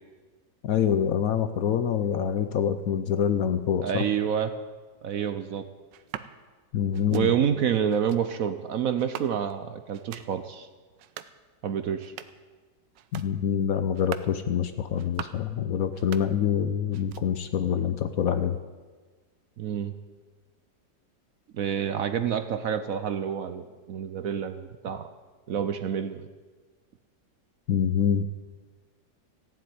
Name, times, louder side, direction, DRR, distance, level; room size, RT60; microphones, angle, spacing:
voice 1, 0.6-4.0 6.7-7.3 13.1-18.6 27.7-28.3, left 8 dB, 65° left, 10 dB, 1.0 m, -26 dB
voice 2, 3.8-4.5 5.0-5.6 7.1-10.7 11.6-12.1 19.6-19.9 21.5-25.1 25.5-26.3, right 8 dB, 60° right, 10 dB, 1.0 m, -28 dB
sound 1, 5.9-6.3 6.9-7.3 7.9-8.2 9.0-9.6 9.9-10.3 10.9-11.4 11.9-12.5 12.9-13.3 13.9-14.4 14.9-15.5 15.9-16.6 16.9-17.5, right 10 dB, 90° right, 1.3 m, -42 dB
15.0 x 7.6 x 9.4 m, 1.4 s
omnidirectional pair, 1.9 m